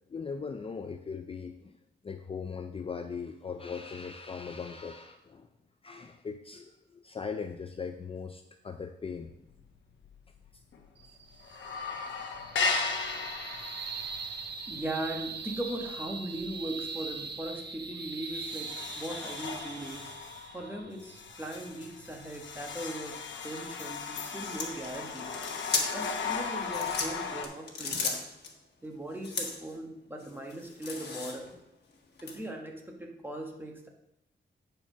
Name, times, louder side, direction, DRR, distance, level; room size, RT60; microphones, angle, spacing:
voice 1, 0.1-1.8 2.0-5.5 5.8-9.3, left 5 dB, 30° left, 7 dB, 0.4 m, -39 dB
sound 1, 9.3-9.8 10.0-10.1 10.5-11.1 11.3-16.6 17.0-17.3 17.8-17.9 18.3-27.5, left 4 dB, 80° left, 1.0 m, -36 dB
sound 2, 11.0-23.6, right 5 dB, 65° right, 0.9 m, -42 dB
voice 2, 14.7-18.7 18.9-20.2 20.5-25.3 25.9-28.3 28.8-31.5 32.2-33.9, right 1 dB, 10° right, 1 dB, 1.3 m, -39 dB
sound 3, 24.4-26.1 26.6-28.5 29.2-29.7 30.2-31.6 32.2-32.3, left 4 dB, 60° left, 1.4 m, -35 dB
8.7 x 4.5 x 6.0 m, 0.85 s
wide cardioid pair, 135°, 19 cm